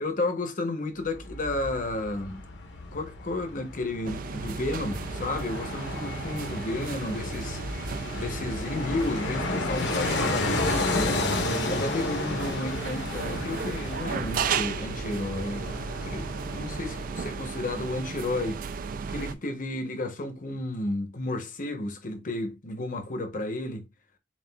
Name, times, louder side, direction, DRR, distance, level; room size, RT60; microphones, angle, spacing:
voice 1, 0.0-2.4 2.9-11.3 11.7-18.7 19.1-23.8, left 2 dB, 45° left, 0.8 m, -32 dB
Fixed-wing aircraft airplane, 1.0-18.0 18.3-18.4, left 2 dB, 75° left, 1.0 m, -32 dB
sound 1, 4.0-19.3, right 5 dB, 50° right, 0.3 m, -35 dB
7.3 x 2.4 x 2.2 m
head